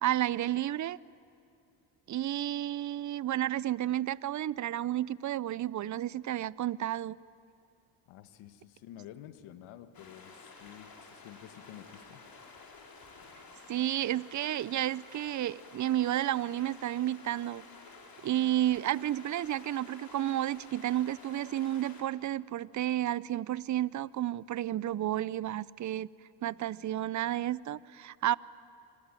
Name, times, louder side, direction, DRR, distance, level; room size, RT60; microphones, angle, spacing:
voice 1, 0.0-1.0 2.1-7.2 13.7-17.6 18.2-26.1 26.4-28.4, right 12 dB, 40° right, 21 dB, 0.6 m, -31 dB
voice 2, 8.1-12.2, left 11 dB, 80° left, 11 dB, 1.6 m, -50 dB
sound 1, 9.9-22.0, left 4 dB, 45° left, 4.7 m, -52 dB
26.0 x 21.0 x 9.1 m, 2.8 s
supercardioid pair, 80°, 48 cm